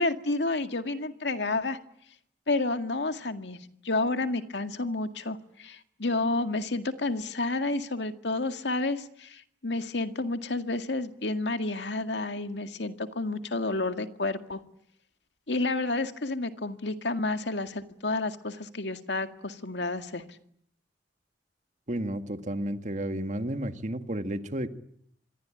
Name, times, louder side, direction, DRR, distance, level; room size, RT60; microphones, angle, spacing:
voice 1, 0.0-1.8 2.5-3.6 3.8-14.6 15.5-20.2, left 2 dB, 85° left, 8 dB, 2.0 m, -30 dB
voice 2, 21.9-24.7, right 1 dB, 45° right, 8 dB, 1.9 m, -32 dB
27.0 x 22.0 x 10.0 m, 0.70 s
head